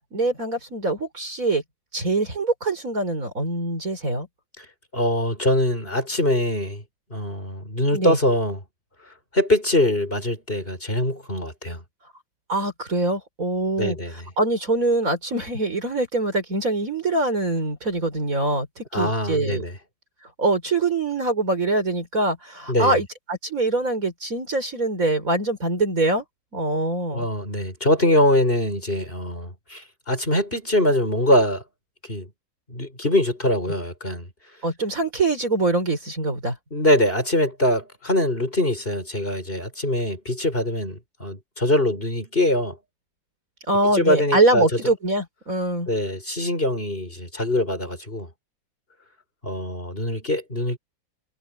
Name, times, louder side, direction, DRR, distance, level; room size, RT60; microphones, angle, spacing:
voice 1, 0.1-1.6 1.9-4.3 7.9-8.2 12.5-14.0 14.4-19.6 20.4-26.2 26.5-27.3 34.6-36.5 43.7-45.9, right 2 dB, 45° right, 5.1 m, -23 dB
voice 2, 4.9-6.8 7.1-8.6 9.3-11.8 13.8-14.3 18.9-19.8 22.7-23.0 27.1-31.6 32.1-32.3 32.7-34.3 36.7-42.8 43.9-44.7 45.9-48.3 49.4-50.8, left 1 dB, 30° left, 6.4 m, -23 dB
omnidirectional pair, 2.0 m